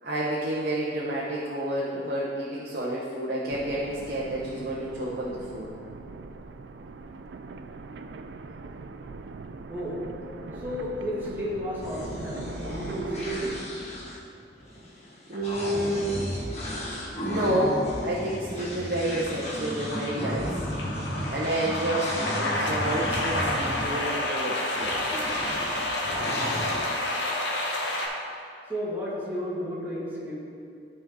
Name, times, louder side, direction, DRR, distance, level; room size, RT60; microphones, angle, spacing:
voice 1, 0.0-5.7 15.3-16.4 17.3-20.6 21.3-25.0, right 1 dB, 60° right, -6 dB, 1.0 m, -29 dB
sound 1, 3.5-13.7, right 3 dB, 80° right, 0.4 m, -42 dB
voice 2, 9.7-13.9 28.7-30.3, equal, 10° right, -8 dB, 1.9 m, -33 dB
sound 2, 11.8-24.0 24.8-26.8, equal, 40° left, 1.4 m, -34 dB
sound 3, 18.6-18.9 19.2-28.1, left 1 dB, 85° left, 1.3 m, -30 dB
12.5 x 4.4 x 3.8 m, 2.5 s
head